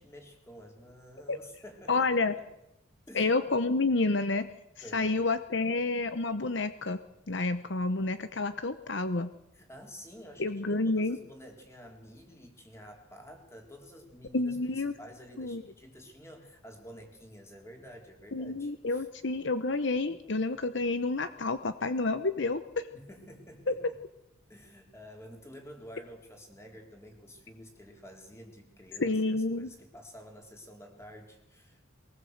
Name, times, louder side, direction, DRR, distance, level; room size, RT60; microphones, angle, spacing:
voice 1, 0.0-2.5 3.1-3.4 4.8-5.2 9.5-19.1 22.9-24.0 24.5-31.8, equal, 15° left, 3 dB, 3.6 m, -50 dB
voice 2, 1.9-2.3 3.1-4.5 4.9-7.0 7.3-9.3 10.4-11.2 14.3-14.9 15.4-15.6 18.3-22.9 23.7-23.8 29.0-29.7, left 3 dB, 60° left, 11 dB, 0.9 m, -29 dB
23.0 x 19.0 x 8.0 m, 0.85 s
head